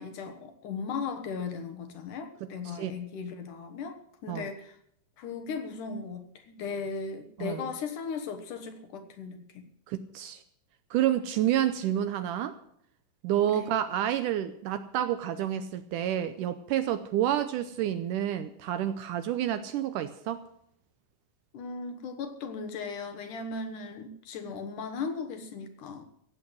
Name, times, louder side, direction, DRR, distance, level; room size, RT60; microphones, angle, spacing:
voice 1, 0.0-4.8 5.2-9.4 13.5-13.7 21.5-26.0, left 5 dB, 65° left, 7 dB, 2.5 m, -37 dB
voice 2, 2.4-2.9 4.3-4.5 7.4-7.6 9.9-10.4 10.9-12.6 13.2-20.4, right 11 dB, 80° right, 11 dB, 1.9 m, -29 dB
16.0 x 8.5 x 7.7 m, 0.71 s
omnidirectional pair, 4.3 m